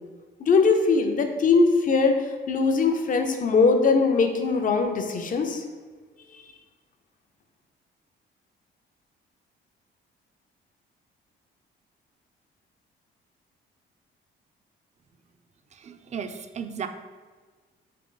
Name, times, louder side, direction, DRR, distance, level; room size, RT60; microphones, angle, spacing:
voice 1, 0.4-5.6, left 4 dB, 45° left, 5 dB, 0.5 m, -21 dB
voice 2, 15.7-16.9, right 7 dB, 35° right, 8 dB, 0.4 m, -35 dB
3.8 x 3.0 x 3.8 m, 1.5 s
cardioid pair, 90°, 20 cm